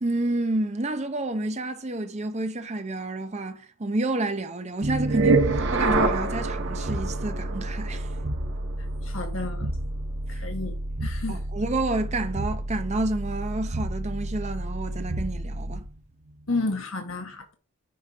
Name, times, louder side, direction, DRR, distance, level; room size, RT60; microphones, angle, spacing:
voice 1, 0.0-5.5 5.7-8.1 11.3-15.8, right 2 dB, 30° right, 0.7 m, -29 dB
sound 1, 4.8-16.0, right 2 dB, 55° right, 1.2 m, -28 dB
voice 2, 9.0-9.7 10.3-10.7 11.0-11.4 16.5-17.6, left 3 dB, 65° left, 1.5 m, -31 dB
9.3 x 4.2 x 4.7 m
head